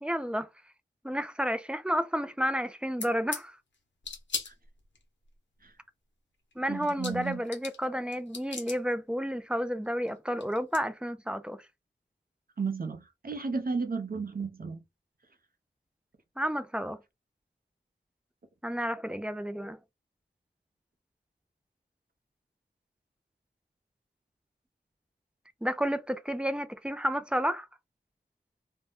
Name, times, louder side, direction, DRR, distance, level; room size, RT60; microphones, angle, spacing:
voice 1, 0.0-0.5 1.0-3.6 6.6-11.6 16.4-17.0 18.6-19.8 25.6-27.7, equal, 5° right, 0.4 m, -31 dB
sound 1, 3.0-3.4 4.0-5.0 6.5-6.6 6.8-7.9 8.1-8.8 10.1-10.2 10.4-10.8, left 4 dB, 90° left, 0.9 m, -38 dB
voice 2, 6.7-7.4 12.6-14.8, right 4 dB, 55° right, 0.7 m, -33 dB
2.6 x 2.2 x 3.4 m
wide cardioid pair, 80°, 18 cm